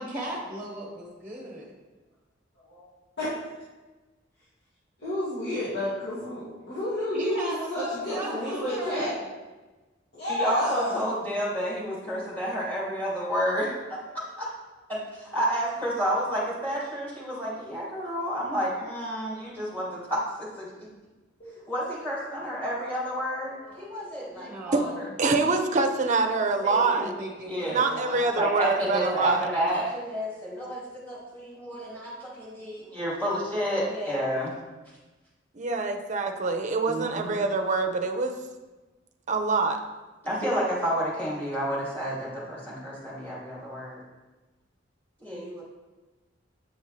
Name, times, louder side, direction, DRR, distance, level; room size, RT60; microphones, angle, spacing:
voice 1, 0.0-1.7 7.1-9.3 24.3-25.1 26.7-28.4, right 1 dB, 10° right, -2 dB, 1.2 m, -36 dB
voice 2, 5.0-9.1 10.1-11.0 17.7-17.8 21.4-21.5 23.6-24.1, left 1 dB, 65° left, -11 dB, 1.9 m, -31 dB
voice 3, 10.3-14.0 14.4-14.5 14.9-20.7 21.7-24.9 26.6-27.2 27.5-27.8 28.3-34.5 36.9-37.3 40.2-44.0 45.2-45.6, equal, 10° left, -7 dB, 2.5 m, -30 dB
voice 4, 25.2-27.1 27.7-29.5 35.5-38.4 39.3-39.8, right 3 dB, 40° right, 5 dB, 0.6 m, -25 dB
8.6 x 5.4 x 3.2 m, 1.2 s
head